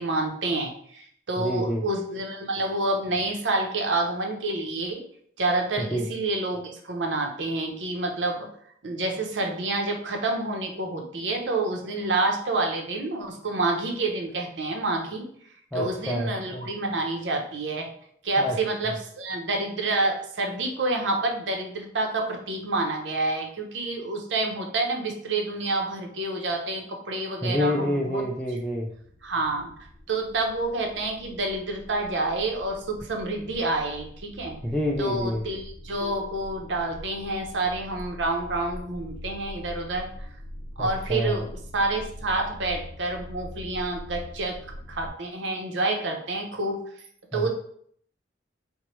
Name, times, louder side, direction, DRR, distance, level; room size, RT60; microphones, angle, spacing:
voice 1, 0.0-5.0 5.4-8.5 8.8-15.3 15.7-17.9 18.2-28.2 29.2-29.7 30.1-34.6 35.0-40.1 40.8-41.5 41.7-44.6 44.9-46.8 47.3-47.5, right 2 dB, 80° right, 2 dB, 0.7 m, -28 dB
voice 2, 1.4-1.8 5.8-6.1 15.7-16.7 18.4-18.6 27.4-28.9 34.6-35.4 40.8-41.4 47.3-47.5, left 1 dB, 5° left, -3 dB, 0.3 m, -27 dB
sound 1, 28.9-45.1, left 1 dB, 60° left, 0.7 m, -43 dB
4.4 x 2.1 x 3.0 m, 0.63 s
head